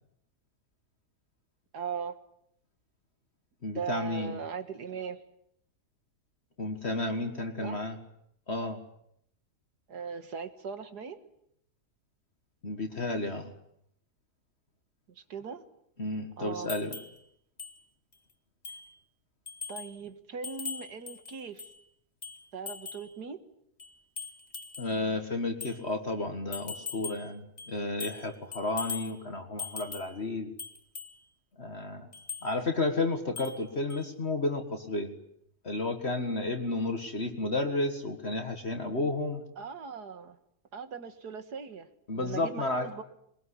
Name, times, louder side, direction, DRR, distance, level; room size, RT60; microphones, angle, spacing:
voice 1, 1.7-2.2 3.7-5.2 7.6-7.8 9.9-11.2 15.2-15.6 16.4-16.7 19.7-21.7 22.5-23.4 39.6-40.4 40.7-41.9 42.1-43.0, right 6 dB, 85° right, 10 dB, 2.3 m, -39 dB
voice 2, 3.6-4.4 6.6-8.0 8.5-8.8 12.6-13.5 16.0-17.0 24.8-30.5 31.6-32.1 32.4-35.2 35.6-39.4 42.1-42.9, left 2 dB, 40° left, 5 dB, 2.0 m, -32 dB
sound 1, 16.7-17.2 17.6-17.8 18.1-18.2 18.6-18.9 19.5-20.0 20.4-21.8 22.2-23.1 23.8-24.9 25.6-25.8 26.5-27.3 27.6-28.3 28.5-29.1 29.6-30.2 30.6-31.1 32.1-32.5 33.4-33.6 33.9-34.0, left 5 dB, 25° left, 1.9 m, -40 dB
22.0 x 21.5 x 9.9 m, 0.73 s
omnidirectional pair, 1.7 m